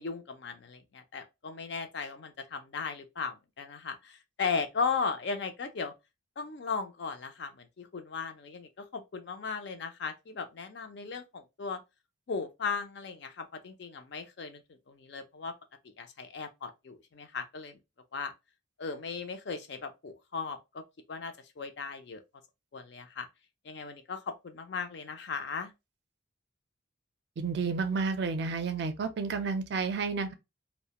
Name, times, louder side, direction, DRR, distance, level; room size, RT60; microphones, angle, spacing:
voice 1, 0.0-5.9 6.4-11.8 12.3-14.6 14.9-15.5 15.8-17.8 18.1-18.3 18.8-20.8 21.1-22.2 22.7-23.3 23.6-25.7, left 5 dB, 55° left, 0.4 m, -37 dB
voice 2, 27.4-30.3, right 4 dB, 55° right, 0.4 m, -31 dB
2.3 x 2.1 x 2.8 m
head